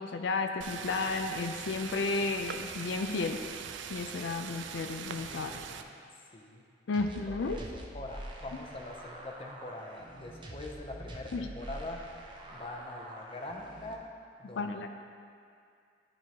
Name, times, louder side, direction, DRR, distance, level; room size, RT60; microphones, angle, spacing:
voice 1, 0.0-3.4 3.9-5.5 6.9-7.6 11.3-11.5 14.6-14.9, left 3 dB, 90° left, 5 dB, 0.4 m, -33 dB
sound 1, 0.6-5.8, right 7 dB, 90° right, 0.4 m, -42 dB
voice 2, 5.1-6.0 6.3-6.6 7.3-12.0 12.5-14.1 14.4-14.9, left 1 dB, 30° left, 1 dB, 0.6 m, -44 dB
sound 2, 6.9-13.9, right 1 dB, 25° right, 0.7 m, -46 dB
11.5 x 4.6 x 2.9 m, 2.3 s
head